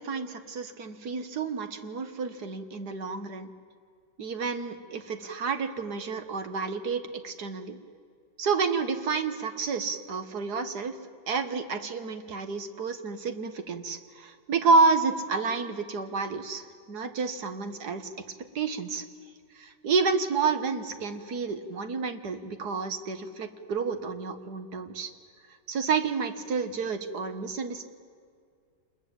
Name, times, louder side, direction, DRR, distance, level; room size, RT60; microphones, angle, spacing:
voice 1, 0.0-3.5 4.2-7.8 8.4-11.0 11.3-18.1 18.6-19.0 19.6-25.1 25.7-27.9, right 4 dB, 55° right, 8 dB, 1.9 m, -29 dB
27.0 x 21.5 x 8.8 m, 2.2 s
omnidirectional pair, 2.1 m